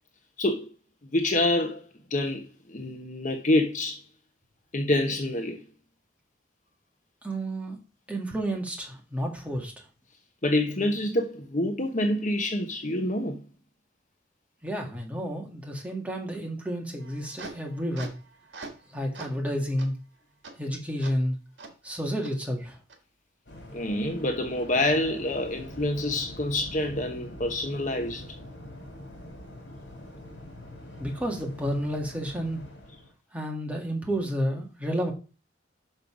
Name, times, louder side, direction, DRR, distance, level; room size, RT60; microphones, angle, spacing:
voice 1, 0.4-0.7 1.1-1.8 2.1-4.0 4.7-5.6 10.4-13.4 23.7-28.3, left 1 dB, 40° left, 1.0 m, -27 dB
voice 2, 7.2-7.8 8.1-9.9 14.6-18.1 18.9-19.9 20.6-21.4 21.8-22.8 31.0-32.6 33.3-35.1, equal, 5° right, 1.8 m, -31 dB
sound 1, 17.0-18.9 19.1-19.4 19.8-19.9 20.4-20.5 21.0-21.1 21.6-21.7 22.2-22.3 22.9-23.0, right 3 dB, 70° right, 1.8 m, -43 dB
Waves surf, 23.5-33.1, left 1 dB, 65° left, 2.5 m, -44 dB
6.5 x 5.4 x 5.0 m
head